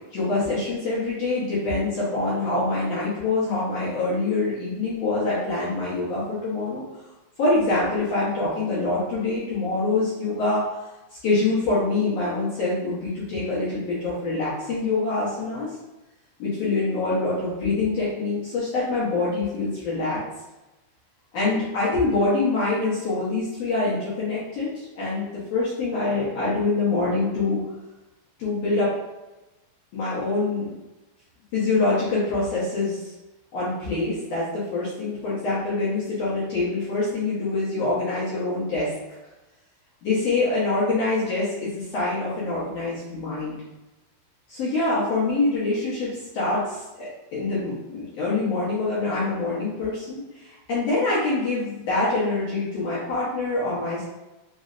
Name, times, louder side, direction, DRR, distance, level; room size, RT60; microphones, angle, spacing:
voice 1, 0.1-6.8 7.4-10.6 11.2-15.7 16.4-20.2 21.3-25.2 25.5-27.6 28.4-28.9 29.9-30.7 31.5-33.0 33.5-38.9 40.0-43.6 44.5-46.1 46.3-50.2 50.7-54.0, left 3 dB, 60° left, -8 dB, 1.9 m, -25 dB
5.3 x 2.7 x 2.5 m, 1.0 s
omnidirectional pair, 3.8 m